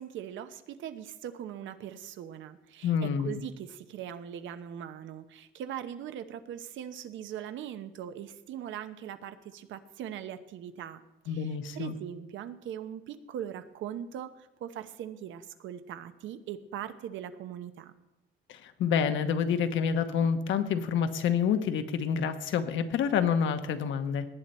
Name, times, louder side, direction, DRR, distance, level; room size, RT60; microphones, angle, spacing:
voice 1, 0.0-17.9, right 10 dB, 75° right, 10 dB, 0.9 m, -41 dB
voice 2, 2.8-3.4 11.3-11.9 18.5-24.3, left 7 dB, 75° left, 9 dB, 1.1 m, -28 dB
18.5 x 9.1 x 4.3 m, 0.98 s
cardioid pair, 150°, 20 cm